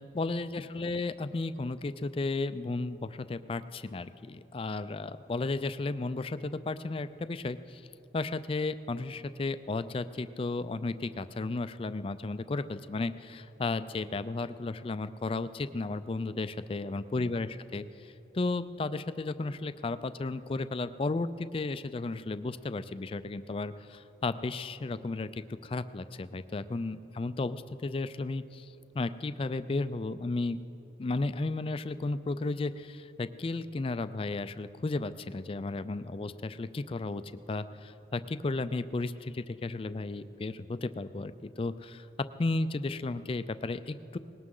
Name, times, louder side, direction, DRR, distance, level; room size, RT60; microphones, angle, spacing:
voice 1, 0.0-7.8 8.1-28.7 28.9-30.6 31.0-42.1 42.4-44.2, left 3 dB, 30° left, 12 dB, 0.4 m, -34 dB
19.5 x 18.0 x 3.8 m, 2.9 s
head